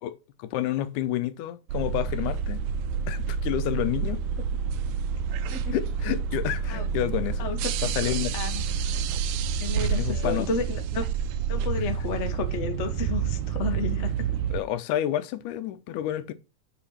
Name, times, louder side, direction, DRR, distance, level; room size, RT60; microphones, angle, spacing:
voice 1, 0.0-2.6 3.1-4.2 5.7-7.4 7.8-8.3 10.0-10.5 14.5-16.3, left 12 dB, 85° left, 2.2 m, -29 dB
sound 1, 1.7-14.6, right 7 dB, 80° right, 2.1 m, -28 dB
voice 2, 8.0-8.6 9.6-11.1 11.5-14.4, left 4 dB, 65° left, 0.6 m, -32 dB
8.2 x 4.3 x 5.7 m
omnidirectional pair, 3.4 m